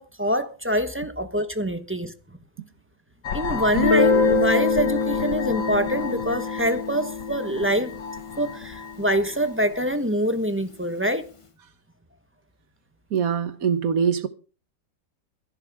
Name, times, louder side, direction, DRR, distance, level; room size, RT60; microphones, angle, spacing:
voice 1, 0.0-2.4 3.3-8.0 8.4-11.2, equal, 10° right, 1.0 m, -25 dB
sound 1, 3.2-10.0, left 5 dB, 65° left, 1.7 m, -35 dB
Guitar, 3.7-9.2, left 4 dB, 25° left, 0.8 m, -25 dB
voice 2, 13.1-14.3, right 7 dB, 50° right, 1.5 m, -23 dB
24.0 x 11.0 x 3.6 m
omnidirectional pair, 2.0 m